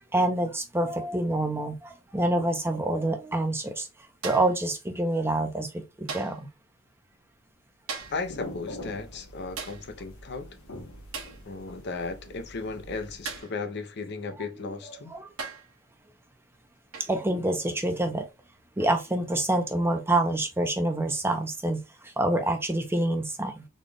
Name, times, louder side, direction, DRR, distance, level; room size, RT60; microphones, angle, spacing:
voice 1, 0.1-3.9 4.2-6.5 14.9-15.3 17.0-18.3 18.8-23.7, right 1 dB, 10° right, 0.6 m, -27 dB
sound 1, 4.2-4.6 6.1-6.5 7.9-8.3 9.6-9.9 11.1-11.4 13.3-13.6 14.7-14.8 15.4-15.8 16.9-17.2 18.8-19.0, right 5 dB, 75° right, 1.1 m, -38 dB
sound 2, 7.9-13.4, left 1 dB, 90° left, 1.2 m, -44 dB
voice 2, 8.1-10.5 11.4-15.2, left 3 dB, 55° left, 0.7 m, -35 dB
4.0 x 2.4 x 3.3 m
head